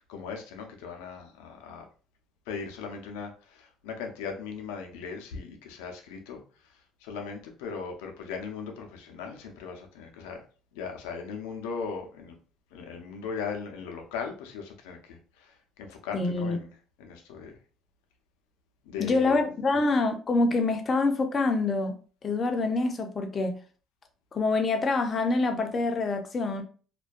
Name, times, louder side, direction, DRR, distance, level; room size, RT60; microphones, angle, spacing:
voice 1, 0.1-1.9 2.5-6.4 7.0-10.5 10.7-12.4 12.7-16.7 17.0-17.5 18.9-19.4, left 5 dB, 85° left, 0.5 m, -38 dB
voice 2, 16.1-16.6 19.0-22.0 22.2-23.6 24.3-26.6, left 3 dB, 40° left, 0.6 m, -26 dB
2.3 x 2.1 x 2.5 m
supercardioid pair, 75°, 0 cm